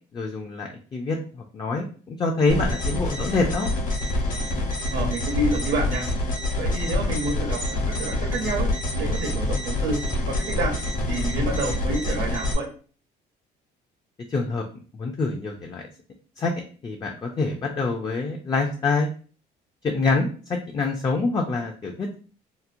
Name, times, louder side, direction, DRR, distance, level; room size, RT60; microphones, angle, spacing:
voice 1, 0.1-3.7 14.3-14.6 15.0-15.9 16.4-16.5 16.8-19.1 19.8-22.2, left 3 dB, 25° left, 2 dB, 0.3 m, -26 dB
sound 1, 2.5-12.5, left 1 dB, 55° left, 1.0 m, -26 dB
voice 2, 4.9-6.1 6.6-8.7 9.0-10.0 10.3-10.7 11.1-12.7, right 2 dB, 85° right, 1 dB, 0.8 m, -28 dB
2.8 x 2.0 x 2.5 m, 0.40 s
cardioid pair, 110°, 17 cm